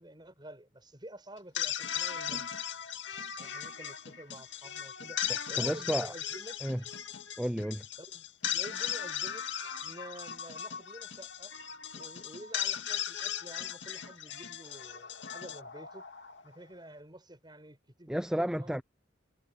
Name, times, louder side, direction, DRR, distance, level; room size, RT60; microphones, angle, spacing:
voice 1, 0.0-2.5 3.4-5.2 5.5-6.6 8.0-8.2 8.5-9.5 9.8-11.5 11.9-16.0 16.4-18.8, right 1 dB, 25° right, 5.7 m, -49 dB
sound 1, 1.4-16.6, left 9 dB, 80° left, 2.2 m, -37 dB
voice 2, 5.6-6.1 6.6-6.8 7.4-7.9 18.1-18.8, equal, 5° right, 0.5 m, -32 dB
head